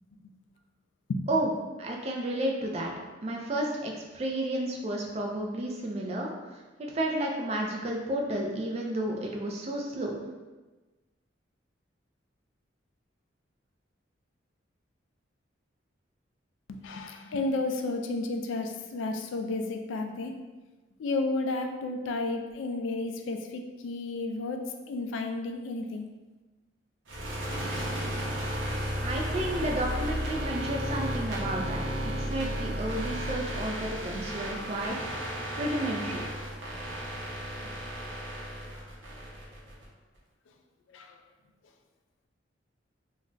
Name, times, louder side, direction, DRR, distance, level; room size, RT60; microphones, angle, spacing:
voice 1, 1.8-2.9 3.2-10.1 29.0-31.8 32.2-35.0 35.6-36.2, right 1 dB, 35° right, 0 dB, 0.4 m, -32 dB
voice 2, 16.7-20.3 21.0-26.1 40.9-41.2, left 2 dB, 85° left, 5 dB, 0.3 m, -32 dB
sound 1, 27.1-39.9, equal, 85° right, 0.7 m, -34 dB
2.4 x 2.1 x 3.7 m, 1.2 s
head